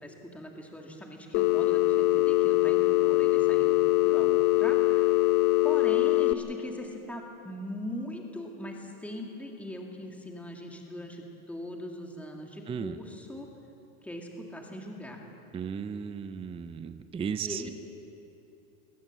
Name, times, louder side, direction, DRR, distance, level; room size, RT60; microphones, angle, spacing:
voice 1, 0.0-3.8 4.0-5.2 5.6-13.5 14.0-15.2 17.4-17.7, left 1 dB, 5° left, 0 dB, 2.3 m, -40 dB
Telephone, 1.3-6.3, left 17 dB, 55° left, 0.9 m, -23 dB
voice 2, 12.7-13.0 15.5-17.7, right 7 dB, 15° right, 10 dB, 0.5 m, -35 dB
22.5 x 19.0 x 7.4 m, 2.9 s
supercardioid pair, 135°, 44 cm